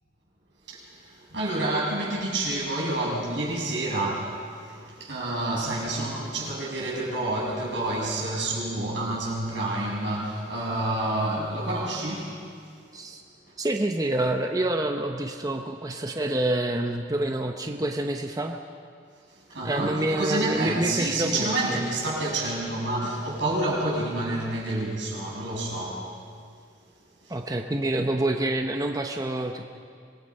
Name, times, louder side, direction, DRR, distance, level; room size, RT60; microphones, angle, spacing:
voice 1, 0.7-12.5 13.5-13.6 19.3-26.1 27.2-27.3, right 2 dB, 85° right, -5 dB, 7.2 m, -29 dB
voice 2, 13.6-18.5 19.6-21.8 27.3-29.6, right 1 dB, 20° right, 3 dB, 0.8 m, -27 dB
25.5 x 19.5 x 5.5 m, 2.2 s
head